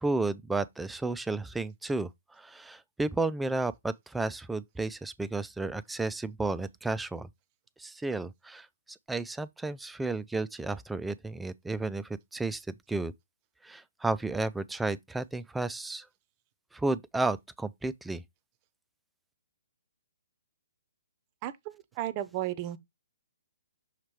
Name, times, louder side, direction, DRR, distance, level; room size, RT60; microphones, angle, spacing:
voice 1, 0.0-2.1 2.4-7.3 7.8-13.1 13.6-16.1 16.7-18.2, right 2 dB, 5° right, 0.4 m, -32 dB
voice 2, 21.4-22.8, right 13 dB, 35° right, 0.7 m, -34 dB
6.5 x 3.1 x 4.7 m
figure-of-eight pair, 130°, 0 cm